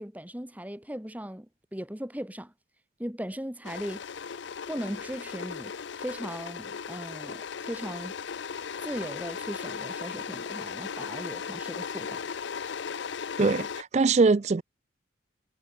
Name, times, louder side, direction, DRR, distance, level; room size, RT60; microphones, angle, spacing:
voice 1, 0.0-2.5 3.0-4.0 4.7-8.1 8.8-12.2, equal, 10° right, 1.4 m, -38 dB
sound 1, 3.6-13.8, left 6 dB, 65° left, 0.5 m, -37 dB
voice 2, 13.4-14.6, right 4 dB, 35° right, 0.4 m, -22 dB
head